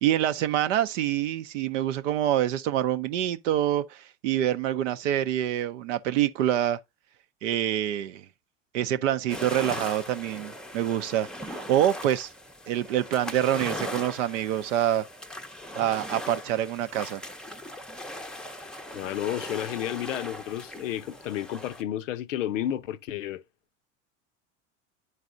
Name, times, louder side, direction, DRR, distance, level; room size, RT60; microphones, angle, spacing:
voice 1, 0.0-6.8 7.4-8.3 8.7-12.3 12.7-15.0 15.7-17.2, right 11 dB, 80° right, 0.6 m, -26 dB
sound 1, 9.3-21.8, left 1 dB, ahead, 0.5 m, -39 dB
voice 2, 18.9-23.4, left 11 dB, 90° left, 0.6 m, -31 dB
11.0 x 4.0 x 2.5 m
hypercardioid pair, 85°, 37 cm